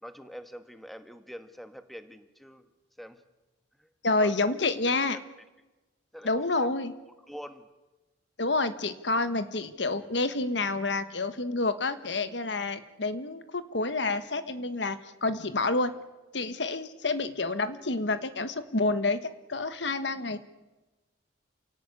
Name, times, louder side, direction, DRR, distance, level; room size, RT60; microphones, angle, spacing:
voice 1, 0.0-2.7 3.0-3.2 3.8-3.9 4.2-4.7 5.1-5.2 6.1-6.7 7.3-7.7, equal, ahead, 9 dB, 1.2 m, -45 dB
voice 2, 4.0-5.2 6.2-6.9 8.4-15.9 16.3-20.4, left 3 dB, 70° left, 11 dB, 1.4 m, -28 dB
28.0 x 18.0 x 8.5 m, 1.1 s
head